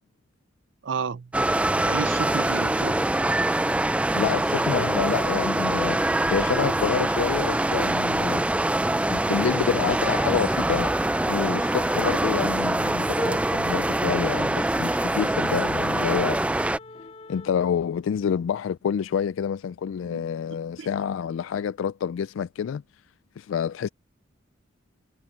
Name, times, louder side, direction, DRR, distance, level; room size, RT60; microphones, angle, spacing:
voice 1, 0.8-1.3 1.8-3.1 20.0-20.2 20.5-20.9, right 5 dB, 70° right, 0.5 m, -32 dB
sound 1, 1.3-16.8, right 1 dB, 5° right, 0.3 m, -24 dB
voice 2, 4.1-8.4 9.1-10.9 11.3-16.5 17.3-22.8 23.4-23.9, left 7 dB, 80° left, 0.3 m, -28 dB
sound 2, 4.5-8.6 8.9-17.5, left 4 dB, 30° left, 0.7 m, -45 dB
head